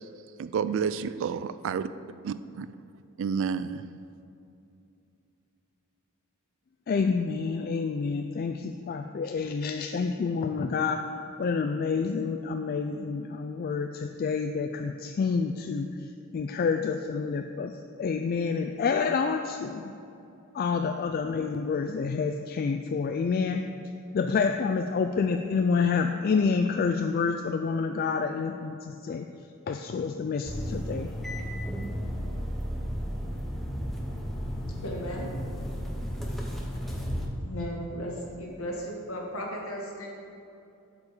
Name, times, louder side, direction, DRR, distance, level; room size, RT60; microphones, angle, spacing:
voice 1, 0.4-1.9 2.2-2.7 3.2-3.9, right 6 dB, 60° right, 14 dB, 0.3 m, -30 dB
voice 2, 6.9-11.0 11.4-15.9 16.3-19.9 20.5-23.6 24.1-29.2 29.7-31.1, left 5 dB, 45° left, 5 dB, 0.3 m, -28 dB
sound 1, 30.4-37.3, equal, ahead, 0.8 m, -33 dB
voice 3, 34.8-35.3 36.7-36.8 37.4-40.2, equal, 70° left, -1 dB, 1.7 m, -36 dB
8.2 x 5.0 x 6.6 m, 2.7 s
head